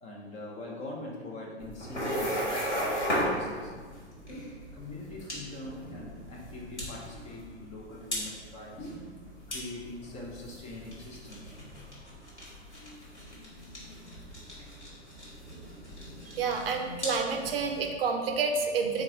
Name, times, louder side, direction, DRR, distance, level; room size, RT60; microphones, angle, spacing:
voice 1, 0.0-3.7 4.7-8.9 9.5-11.8, left 2 dB, 20° left, -2 dB, 0.5 m, -43 dB
sound 1, 1.6-17.9, equal, 85° left, 1.3 m, -37 dB
voice 2, 16.3-19.0, right 5 dB, 60° right, 3 dB, 0.5 m, -29 dB
3.9 x 2.3 x 3.6 m, 1.5 s
figure-of-eight pair, 100°, 33 cm